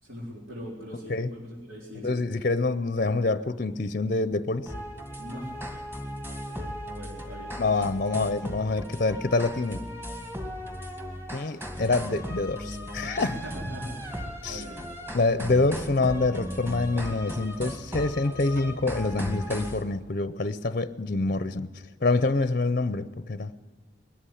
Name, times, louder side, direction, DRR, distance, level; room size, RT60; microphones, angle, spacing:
voice 1, 0.0-2.2 5.2-5.6 5.9-6.1 6.5-7.6 13.2-14.8, equal, 90° right, 4.1 m, -41 dB
voice 2, 2.0-4.7 7.6-9.8 11.3-13.3 14.4-14.6 15.1-23.5, left 3 dB, 45° left, 0.6 m, -26 dB
sound 1, 4.7-19.8, equal, 10° right, 2.2 m, -37 dB
21.0 x 13.0 x 10.0 m
head